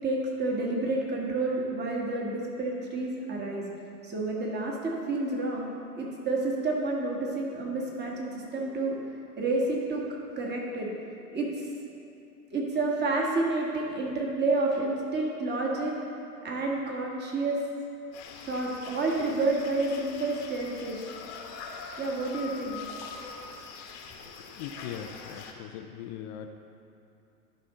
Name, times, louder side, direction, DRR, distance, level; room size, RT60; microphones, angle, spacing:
voice 1, 0.0-3.6 4.0-5.7 6.0-10.0 10.4-10.9 11.3-11.7 12.5-15.9 16.4-17.6 18.4-21.0 22.0-22.8, right 2 dB, 20° right, -2 dB, 1.6 m, -29 dB
sound 1, 18.1-25.5, left 5 dB, 50° left, 1.1 m, -43 dB
voice 2, 24.5-26.5, left 9 dB, 30° left, 7 dB, 0.4 m, -40 dB
11.5 x 5.4 x 3.8 m, 2.7 s
hypercardioid pair, 100°, 48 cm